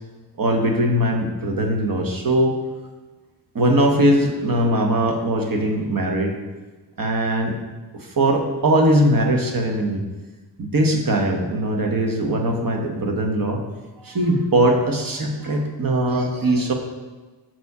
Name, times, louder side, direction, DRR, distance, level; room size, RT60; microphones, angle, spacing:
voice 1, 0.4-2.6 3.5-6.3 7.0-7.5 8.2-10.0 10.6-13.6 14.0-16.7, right 1 dB, 50° right, 2 dB, 1.3 m, -20 dB
7.1 x 6.2 x 4.8 m, 1.3 s
wide cardioid pair, 115°, 43 cm